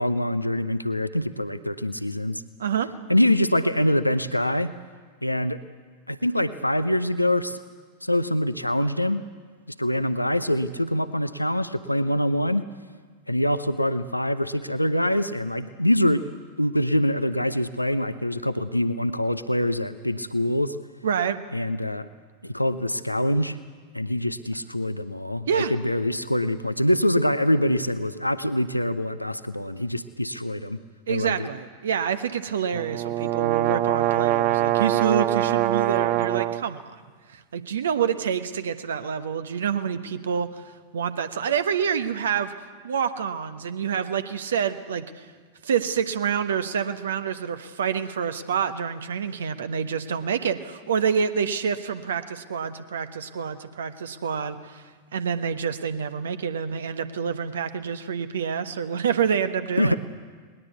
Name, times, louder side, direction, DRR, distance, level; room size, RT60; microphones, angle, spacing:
voice 1, 0.0-2.4 3.1-4.7 5.2-5.6 6.1-7.6 8.0-9.2 9.8-12.7 13.3-16.3 16.6-20.8 21.5-22.1 22.4-23.6 23.9-30.8 31.1-31.5 59.8-60.0, left 1 dB, 90° left, 12 dB, 0.7 m, -24 dB
voice 2, 21.0-21.4 25.5-25.7 31.1-37.0 37.3-40.6 40.9-45.3 45.6-54.8 55.1-60.0, right 7 dB, 65° right, 10 dB, 1.1 m, -27 dB
sound 1, 32.7-36.6, right 13 dB, 40° right, 0.6 m, -23 dB
20.0 x 20.0 x 8.3 m, 1.6 s
figure-of-eight pair, 90°, 0 cm